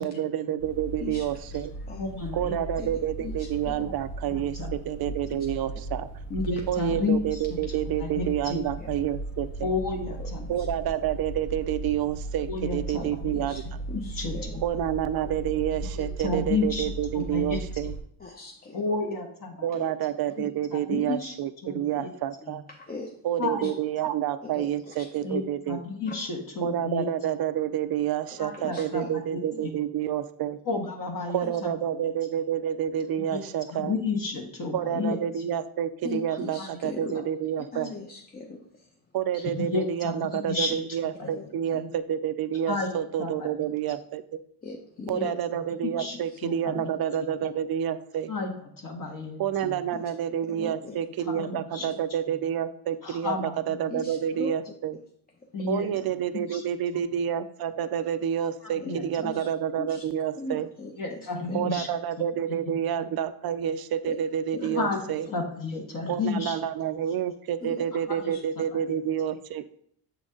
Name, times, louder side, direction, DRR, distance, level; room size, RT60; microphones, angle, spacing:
voice 1, 0.0-1.7 2.3-6.1 6.7-9.7 10.5-13.6 14.6-17.9 19.6-22.6 23.2-25.8 26.6-30.6 31.3-33.9 34.7-37.9 39.1-44.4 45.1-48.3 49.4-55.0 55.7-60.7 61.5-65.3 66.1-69.7, right 10 dB, 50° right, 13 dB, 0.5 m, -29 dB
sound 1, 0.6-18.0, right 2 dB, 80° left, 1.7 m, -37 dB
voice 2, 2.0-2.6 4.3-4.7 5.3-5.4 6.3-7.4 8.0-8.6 9.6-10.5 12.5-13.0 13.9-14.6 15.9-16.9 17.1-17.6 18.7-19.9 20.4-21.3 21.6-22.1 22.4-22.6 23.4-23.7 25.2-25.4 25.7-27.0 28.4-29.7 30.7-31.7 33.3-33.4 33.7-35.5 36.6-36.7 37.1-37.2 39.3-40.8 41.2-41.3 41.7-41.9 42.7-42.9 43.2-43.5 45.0-45.3 45.8-46.8 48.3-48.5 48.8-49.7 51.2-51.9 53.0-53.5 55.5-55.9 56.5-56.7 58.6-59.3 61.0-61.9 64.7-65.0 65.3-66.6 68.1-68.3, left 3 dB, 45° left, 1 dB, 1.6 m, -32 dB
voice 3, 3.2-3.9 8.8-8.9 10.1-10.3 10.6-10.7 13.0-13.6 13.9-14.4 18.2-18.8 22.7-23.1 23.6-23.7 24.4-25.3 26.1-26.2 28.5-29.1 29.5-29.6 31.4-31.6 31.9-32.0 36.0-37.2 37.7-38.9 41.2-41.7 44.6-45.3 46.1-46.4 46.7-46.9 49.9-50.1 50.5-51.0 51.3-51.5 51.8-51.9 53.9-54.5 58.8-58.9 59.2-59.5 59.8-60.1 60.4-61.7 64.0-64.1 64.5-64.8 67.6-67.9 68.3-68.4, left 3 dB, 20° left, 1 dB, 0.7 m, -40 dB
7.0 x 3.9 x 3.7 m, 0.67 s
supercardioid pair, 75°, 47 cm